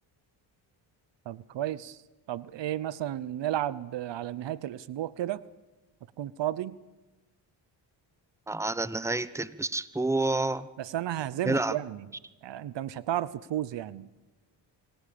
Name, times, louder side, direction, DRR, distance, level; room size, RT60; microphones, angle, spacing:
voice 1, 1.3-2.0 2.3-5.4 6.2-6.8 10.8-12.1 12.4-14.1, right 12 dB, 65° right, 19 dB, 0.9 m, -33 dB
voice 2, 8.5-10.7 11.4-11.7, right 2 dB, 5° right, 16 dB, 1.0 m, -29 dB
25.5 x 15.0 x 8.7 m, 1.1 s
supercardioid pair, 65°, 47 cm